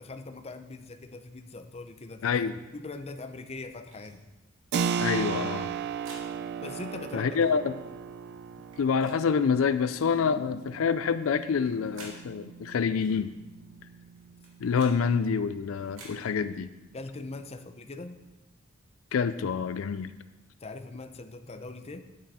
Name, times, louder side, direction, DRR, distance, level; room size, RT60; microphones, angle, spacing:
voice 1, 0.0-2.4 2.7-4.2 6.6-7.4 16.9-18.2 20.6-22.0, left 3 dB, 30° left, 8 dB, 0.7 m, -41 dB
voice 2, 2.2-2.6 5.0-5.7 7.1-7.8 8.8-13.3 14.6-16.7 19.1-20.1, left 6 dB, 80° left, 13 dB, 0.4 m, -27 dB
sound 1, 3.9-4.1 5.4-6.3 7.3-7.5 8.6-9.2 10.0-10.2 11.4-12.2 13.0-13.2 14.2-15.0 15.8-16.2, right 2 dB, 75° right, 2.7 m, -50 dB
Keyboard (musical), 4.7-15.1, right 6 dB, 55° right, 0.4 m, -36 dB
10.5 x 9.4 x 4.2 m, 1.1 s
head